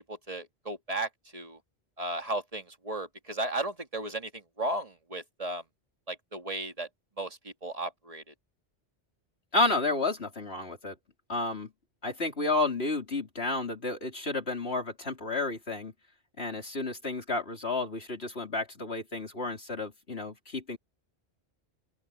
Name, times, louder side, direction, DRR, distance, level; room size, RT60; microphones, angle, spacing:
voice 1, 0.1-1.6 2.0-5.6 6.1-6.9 7.2-8.3, right 2 dB, 35° right, 2.1 m, -35 dB
voice 2, 9.5-10.9 11.3-11.7 12.0-15.9 16.4-20.8, left 2 dB, 65° left, 4.2 m, -31 dB
open air
omnidirectional pair, 1.1 m